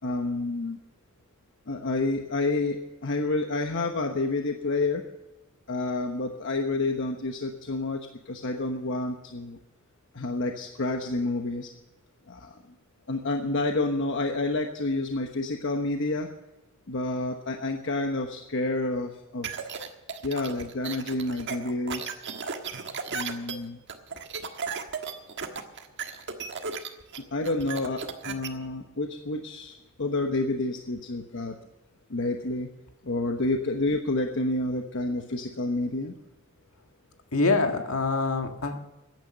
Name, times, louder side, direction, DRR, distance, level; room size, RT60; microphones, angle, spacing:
voice 1, 0.0-0.8 1.7-2.8 3.0-5.1 5.7-9.6 10.1-11.7 12.3-12.6 13.1-16.3 16.9-19.5 20.2-22.1 23.1-23.8 27.3-31.5 32.1-32.7 33.0-36.1, left 2 dB, 60° left, 4 dB, 1.1 m, -29 dB
sound 1, 19.4-28.5, right 5 dB, 60° right, 1.5 m, -35 dB
voice 2, 37.3-38.8, left 3 dB, 80° left, 5 dB, 1.8 m, -25 dB
15.0 x 10.5 x 6.8 m, 0.99 s
head